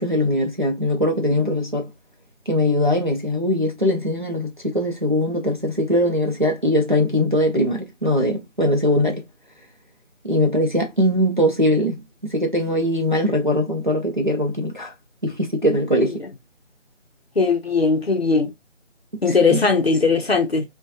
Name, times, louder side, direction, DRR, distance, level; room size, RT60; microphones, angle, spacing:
voice 1, 0.0-1.9 2.5-9.2 10.2-14.9 15.2-16.2 19.3-19.6, left 1 dB, 40° right, 0.5 m, -21 dB
voice 2, 17.4-18.5 19.2-20.6, left 4 dB, 55° left, 0.6 m, -19 dB
2.4 x 2.2 x 2.6 m
figure-of-eight pair, 175°, 37 cm